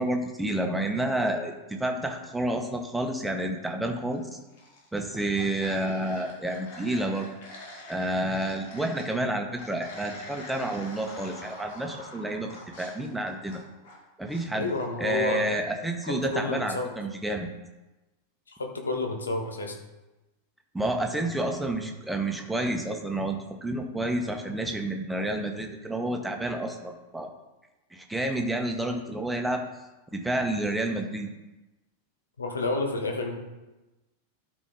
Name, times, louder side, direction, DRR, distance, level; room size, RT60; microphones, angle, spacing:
voice 1, 0.0-4.4 4.9-7.3 7.9-12.5 12.8-13.6 14.2-14.7 15.0-17.5 20.7-27.3 27.9-29.6 30.1-31.3, right 1 dB, 5° right, 3 dB, 1.2 m, -29 dB
sound 1, 4.3-4.9 5.1-9.1 9.6-14.0 14.3-14.8, left 1 dB, 55° left, 2.2 m, -45 dB
voice 2, 14.5-15.5 16.1-16.9 18.5-19.8 32.4-33.4, left 3 dB, 75° left, 3 dB, 1.4 m, -30 dB
12.5 x 5.1 x 3.8 m, 1.1 s
figure-of-eight pair, 90°, 0 cm